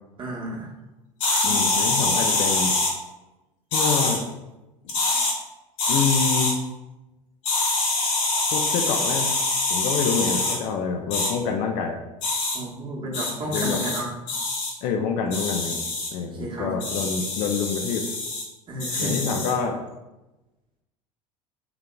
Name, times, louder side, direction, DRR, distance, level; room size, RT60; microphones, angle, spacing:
voice 1, 0.2-0.7 12.5-14.1 16.3-17.0 18.7-19.3, right 1 dB, 25° right, -3 dB, 1.0 m, -32 dB
sound 1, 1.2-2.9 3.7-4.2 4.9-5.3 5.8-6.5 7.4-10.6 11.1-11.3 12.2-12.6 13.1-14.0 14.3-14.7 15.3-16.1 16.8-18.4 18.8-19.5, left 2 dB, 60° left, 0.9 m, -24 dB
voice 2, 1.4-2.7 3.7-4.2 5.9-6.5 8.5-9.3 9.7-12.0 13.5-13.8 14.8-15.8 16.1-18.0 19.0-19.8, left 6 dB, 45° left, 3 dB, 0.4 m, -26 dB
3.6 x 2.8 x 2.2 m, 1.0 s
figure-of-eight pair, 70°, 18 cm